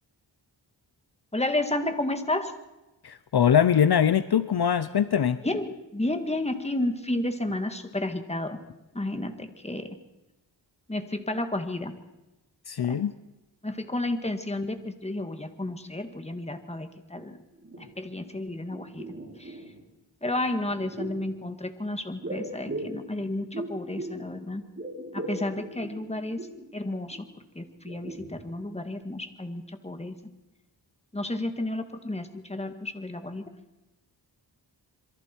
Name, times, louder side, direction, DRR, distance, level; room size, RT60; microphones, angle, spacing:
voice 1, 1.3-2.6 5.4-8.6 8.9-10.0 10.9-11.9 12.8-13.0 13.6-17.4 17.8-19.1 19.4-19.6 20.2-24.6 25.1-26.4 26.7-27.3 27.6-30.1 31.1-33.4, left 1 dB, 15° left, 8 dB, 1.9 m, -31 dB
voice 2, 3.0-5.4 12.7-13.1, left 8 dB, 60° left, 13 dB, 0.8 m, -22 dB
sound 1, 17.2-17.3 17.5-18.4 18.7-19.8 20.6-21.3 22.2-24.3 24.6-26.7 27.1-27.2 27.7-28.7 29.0-29.1, right 1 dB, 30° right, 7.1 m, -38 dB
27.0 x 23.0 x 4.6 m, 1.0 s
wide cardioid pair, 95°, 43 cm